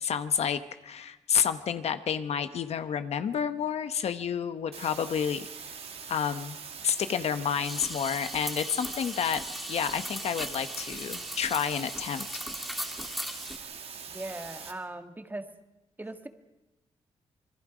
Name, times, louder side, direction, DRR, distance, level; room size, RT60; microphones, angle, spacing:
voice 1, 0.0-5.5 6.1-6.6 6.8-9.4 9.7-12.3, left 7 dB, 70° left, 10 dB, 1.0 m, -30 dB
sound 1, 4.7-14.7, right 6 dB, 60° right, 2.1 m, -43 dB
sound 2, 7.6-13.6, equal, ahead, 1.7 m, -38 dB
voice 2, 14.1-15.5 16.0-16.3, right 2 dB, 15° right, 7 dB, 1.6 m, -39 dB
27.0 x 21.5 x 5.1 m, 1.0 s
cardioid pair, 95°, 11 cm